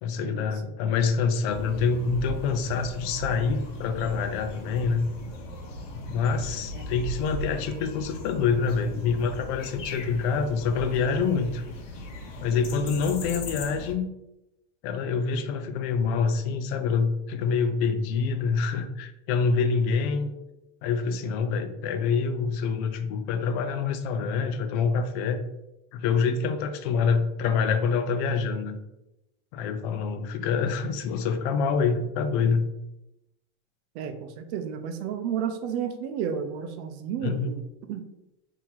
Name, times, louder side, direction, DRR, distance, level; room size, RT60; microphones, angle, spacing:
voice 1, 0.0-5.1 5.9-11.6 12.4-14.1 14.8-20.3 20.8-25.4 25.9-28.8 29.5-32.7 37.2-37.5, left 5 dB, 60° left, 8 dB, 0.6 m, -26 dB
sound 1, 1.5-13.9, left 1 dB, 85° left, 0.8 m, -38 dB
voice 2, 33.9-37.6 37.9-38.0, right 8 dB, 65° right, 7 dB, 0.6 m, -32 dB
2.8 x 2.8 x 3.8 m, 0.90 s
supercardioid pair, 120°, 36 cm